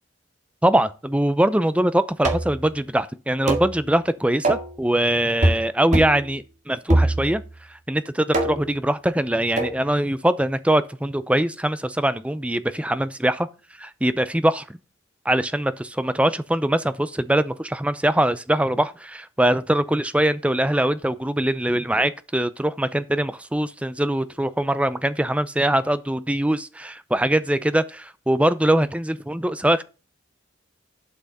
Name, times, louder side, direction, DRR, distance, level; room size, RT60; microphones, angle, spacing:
voice 1, 0.6-7.4 7.9-13.5 13.8-14.6 15.3-29.8, right 1 dB, 5° right, 0.6 m, -22 dB
sound 1, 2.2-2.6 3.5-3.7 4.4-4.7 5.4-5.7 5.9-6.2 6.9-7.5 8.3-8.7 9.6-9.8, right 1 dB, 40° right, 2.0 m, -22 dB
11.5 x 6.0 x 4.2 m
head